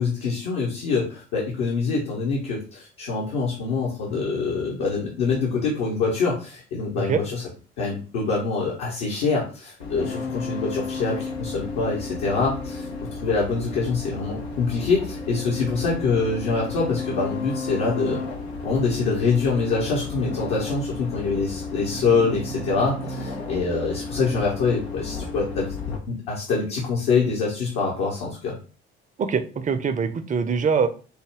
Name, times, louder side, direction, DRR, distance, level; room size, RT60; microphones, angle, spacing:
voice 1, 0.0-7.4 7.8-18.2 18.6-25.7 26.1-28.5, left 4 dB, 60° left, -3 dB, 1.1 m, -25 dB
sound 1, 9.8-26.0, left 3 dB, 80° left, 0.7 m, -33 dB
voice 2, 29.2-30.9, right 6 dB, 25° right, 8 dB, 0.6 m, -23 dB
4.6 x 2.2 x 3.4 m, 0.37 s
figure-of-eight pair, 50°, 32 cm